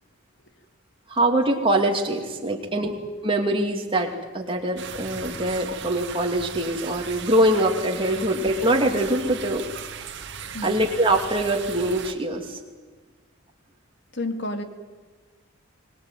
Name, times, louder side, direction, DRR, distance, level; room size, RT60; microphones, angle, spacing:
voice 1, 1.1-2.9 3.2-9.6 10.6-12.6, right 1 dB, 25° right, 1 dB, 2.6 m, -23 dB
voice 2, 2.5-2.9 8.1-8.3 10.5-10.8 14.1-14.6, left 1 dB, 55° left, 7 dB, 2.2 m, -32 dB
sound 1, 4.8-12.1, right 7 dB, 55° right, 1.8 m, -37 dB
23.5 x 19.5 x 9.1 m, 1.4 s
head